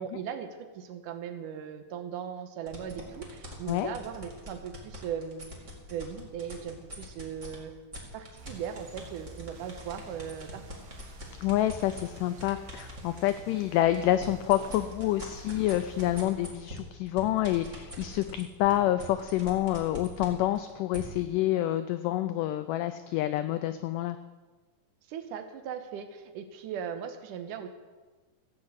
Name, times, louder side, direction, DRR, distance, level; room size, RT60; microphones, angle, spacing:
voice 1, 0.0-5.5 5.9-7.7 8.1-10.6 25.1-27.7, right 8 dB, 70° right, 7 dB, 2.3 m, -38 dB
sound 1, 2.7-7.5 7.9-13.4 13.8-21.0, equal, 25° right, 1.9 m, -43 dB
sound 2, 8.4-16.2, right 3 dB, 90° right, 3.7 m, -50 dB
voice 2, 11.4-24.2, left 13 dB, 85° left, 11 dB, 1.9 m, -28 dB
14.5 x 7.5 x 8.1 m, 1.3 s
omnidirectional pair, 4.3 m